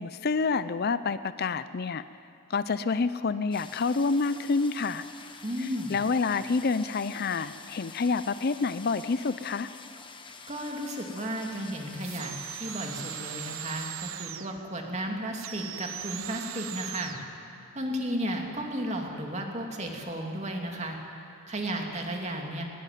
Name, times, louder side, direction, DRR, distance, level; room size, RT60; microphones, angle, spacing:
voice 1, 0.0-2.0 2.5-5.0 5.6-9.7, left 4 dB, 50° left, 14 dB, 0.5 m, -28 dB
sound 1, 3.5-13.9, left 5 dB, 25° left, 1.2 m, -47 dB
voice 2, 5.4-5.9 10.5-17.1 17.7-21.0 21.5-22.6, right 1 dB, 35° right, 1 dB, 2.7 m, -34 dB
sound 2, 12.0-14.6 15.3-17.3, right 11 dB, 80° right, 0.9 m, -39 dB
20.0 x 20.0 x 9.2 m, 2.6 s
head